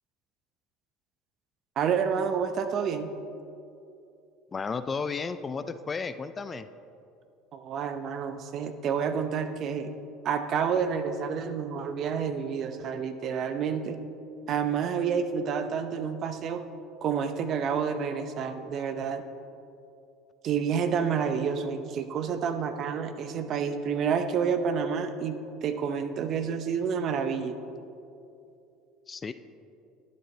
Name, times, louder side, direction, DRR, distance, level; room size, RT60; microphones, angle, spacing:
voice 1, 1.8-3.1 7.5-9.9 10.2-14.0 14.5-16.6 17.0-19.2 20.4-27.6, right 6 dB, 50° right, 9 dB, 0.7 m, -29 dB
voice 2, 4.5-6.7 29.1-29.3, left 5 dB, 30° left, 12 dB, 0.4 m, -33 dB
11.5 x 9.5 x 3.3 m, 2.7 s
hypercardioid pair, 80°, 0 cm